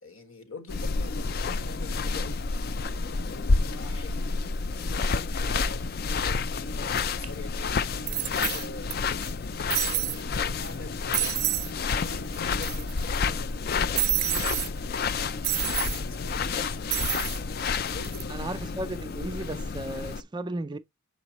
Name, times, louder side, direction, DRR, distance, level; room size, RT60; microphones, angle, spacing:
voice 1, 0.0-2.4 3.3-4.3 4.8-9.0 9.8-13.6 15.6-17.0 17.9-18.8, left 2 dB, 75° left, 1.5 m, -45 dB
sound 1, 0.7-20.2, left 4 dB, 45° left, 0.4 m, -30 dB
sound 2, 7.2-7.3 8.1-8.9 9.2-9.3 9.7-10.2 10.6-10.8 11.1-11.7 12.0-12.1 12.3-13.1 14.0-14.7 15.4-16.0 16.9-17.4 17.9-18.2, right 20 dB, 80° right, 0.4 m, -29 dB
voice 2, 18.3-20.8, right 1 dB, 20° right, 0.4 m, -35 dB
7.0 x 4.9 x 2.9 m
head